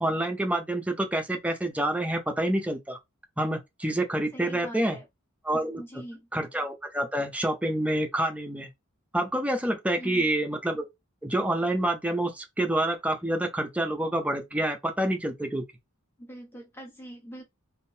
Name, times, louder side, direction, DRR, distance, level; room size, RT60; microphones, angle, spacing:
voice 1, 0.0-3.0 3.4-5.0 5.4-5.8 6.3-8.7 9.1-10.8 11.2-15.6, right 1 dB, 5° right, 0.6 m, -27 dB
voice 2, 4.3-5.0 5.8-6.3 10.0-10.3 16.2-17.4, right 1 dB, 10° left, 1.0 m, -43 dB
3.7 x 2.6 x 2.7 m
head